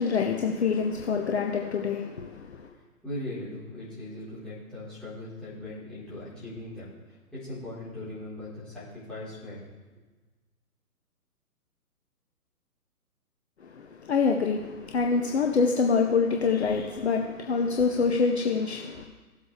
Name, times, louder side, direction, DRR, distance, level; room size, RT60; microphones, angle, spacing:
voice 1, 0.0-2.7 13.6-19.0, left 5 dB, 45° left, 2 dB, 1.0 m, -26 dB
voice 2, 2.6-9.7, left 1 dB, ahead, -13 dB, 4.0 m, -40 dB
16.5 x 8.0 x 3.3 m, 1.3 s
figure-of-eight pair, 135°, 46 cm